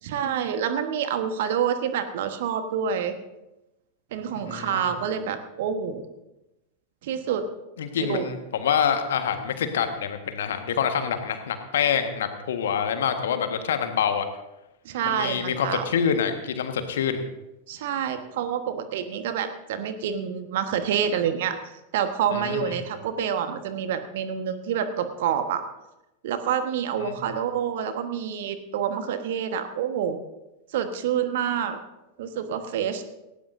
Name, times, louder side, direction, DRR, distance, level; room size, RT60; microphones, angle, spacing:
voice 1, 0.0-3.1 4.1-6.0 7.0-7.4 8.0-8.2 14.8-15.9 17.7-21.6 21.9-25.6 26.2-30.2 30.7-31.8 32.2-33.0, right 8 dB, 55° right, 9 dB, 1.3 m, -27 dB
voice 2, 4.3-4.9 7.8-14.3 15.0-17.2 22.3-22.8 27.0-27.2, left 7 dB, 60° left, 7 dB, 1.5 m, -26 dB
18.5 x 17.0 x 2.7 m, 0.96 s
figure-of-eight pair, 90°, 0 cm